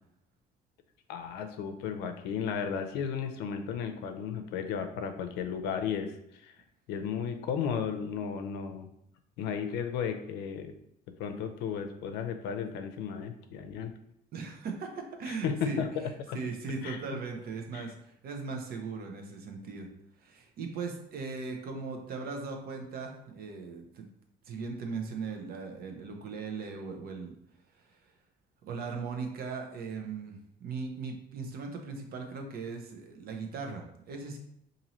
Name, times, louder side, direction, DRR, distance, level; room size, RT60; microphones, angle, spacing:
voice 1, 1.1-6.5 6.9-8.9 9.4-10.7 11.2-13.9 15.3-15.9 16.3-16.4 16.8-17.0 17.7-17.9, left 7 dB, 90° left, 7 dB, 0.5 m, -34 dB
voice 2, 14.3-15.8 16.3-19.9 20.2-24.1 24.5-27.3 28.6-34.4, right 4 dB, 65° right, 3 dB, 0.7 m, -38 dB
4.0 x 2.6 x 3.0 m, 0.75 s
cardioid pair, 110°, 17 cm